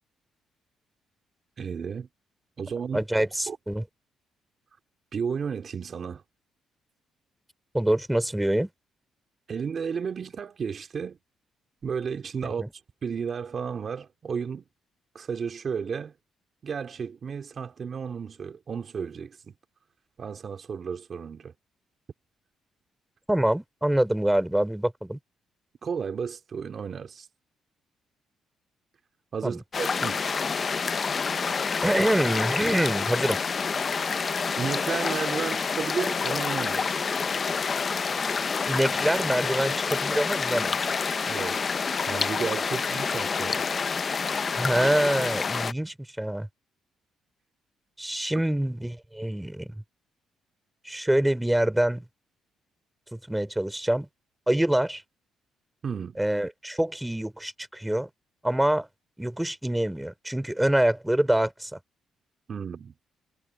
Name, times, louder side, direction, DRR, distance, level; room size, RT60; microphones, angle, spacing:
voice 1, 1.6-2.1 2.6-3.6 5.1-6.2 9.5-11.2 11.8-12.6 13.0-14.6 15.1-16.1 16.6-19.5 20.2-21.5 25.8-27.3 29.3-30.2 34.6-37.1 41.3-43.6 55.8-56.2 62.5-62.9, right 6 dB, 45° right, 3.0 m, -33 dB
voice 2, 2.9-3.8 7.7-8.7 12.6-12.7 23.3-25.2 29.4-29.6 31.8-33.4 38.7-40.7 44.5-46.5 48.0-49.7 50.8-52.0 53.1-54.1 54.5-55.0 56.2-58.1 58.4-58.9 59.2-61.8, right 1 dB, 5° right, 4.7 m, -25 dB
sound 1, 29.7-45.7, left 5 dB, 40° left, 0.7 m, -28 dB
cardioid pair, 90°, 0 cm